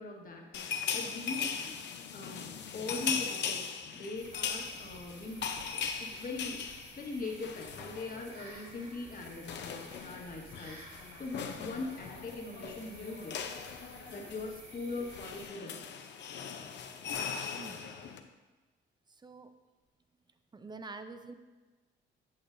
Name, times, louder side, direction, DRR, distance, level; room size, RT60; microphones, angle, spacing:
voice 1, 0.0-1.8 2.1-2.5 2.7-13.5 14.1-15.9, left 3 dB, 45° left, 0 dB, 1.5 m, -41 dB
sound 1, 0.5-8.4 8.7-8.9 9.1-18.2, left 6 dB, 65° left, 0.7 m, -39 dB
sound 2, 4.1-15.5, right 2 dB, 45° right, 2.6 m, -53 dB
voice 2, 17.6-17.9 19.1-19.5 20.5-21.3, right 3 dB, 20° right, 9 dB, 0.6 m, -46 dB
8.9 x 7.7 x 2.6 m, 1.3 s
cardioid pair, 90°, 20 cm